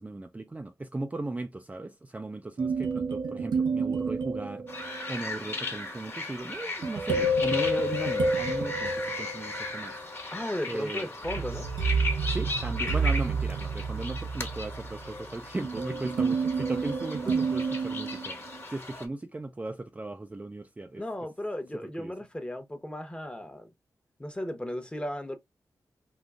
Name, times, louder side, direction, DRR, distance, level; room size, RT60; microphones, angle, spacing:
voice 1, 0.0-4.7 5.1-9.9 10.7-11.1 12.3-21.0 22.0-22.1, right 2 dB, 20° right, 0.3 m, -37 dB
sound 1, 2.6-5.2 6.8-9.8 11.2-18.6, right 5 dB, 80° right, 0.5 m, -30 dB
sound 2, 4.7-19.1, left 2 dB, 30° left, 1.2 m, -37 dB
Keyboard (musical), 7.1-9.8, left 8 dB, 65° left, 0.5 m, -30 dB
voice 2, 10.3-11.7 20.9-23.7 24.2-25.4, left 1 dB, 15° left, 0.9 m, -35 dB
3.6 x 2.6 x 2.3 m
cardioid pair, 70°, 7 cm